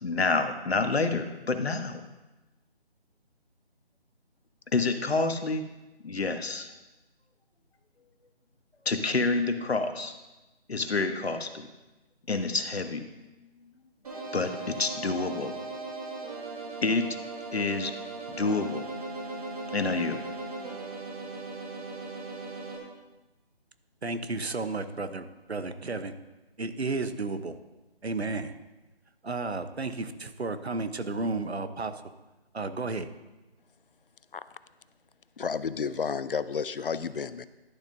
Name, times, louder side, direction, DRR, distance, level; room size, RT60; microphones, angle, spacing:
voice 1, 0.0-2.0 4.7-5.6 6.0-6.7 8.8-10.1 10.7-11.7 12.3-13.1 14.3-15.5 16.8-17.2 17.5-17.9 18.3-18.9 19.7-20.2, left 3 dB, 75° left, 8 dB, 1.2 m, -28 dB
sound 1, 14.0-22.8, right 3 dB, 35° right, 2.2 m, -38 dB
voice 2, 24.0-26.1 26.6-27.6 28.0-28.5 29.2-32.0 32.5-33.1, right 3 dB, 90° right, 10 dB, 1.0 m, -32 dB
voice 3, 35.4-37.5, left 6 dB, 60° left, 15 dB, 0.5 m, -31 dB
11.5 x 10.5 x 2.7 m, 1.1 s
figure-of-eight pair, 160°, 31 cm